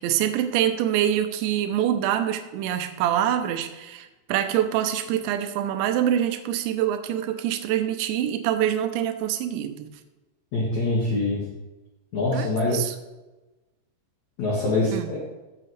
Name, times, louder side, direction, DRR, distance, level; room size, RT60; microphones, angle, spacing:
voice 1, 0.0-9.9 12.3-13.0 14.9-15.1, right 11 dB, 80° right, 8 dB, 2.9 m, -25 dB
voice 2, 10.5-11.4 12.1-12.8 14.4-15.2, left 2 dB, 55° left, -4 dB, 2.2 m, -24 dB
15.0 x 7.9 x 3.3 m, 1.1 s
omnidirectional pair, 5.6 m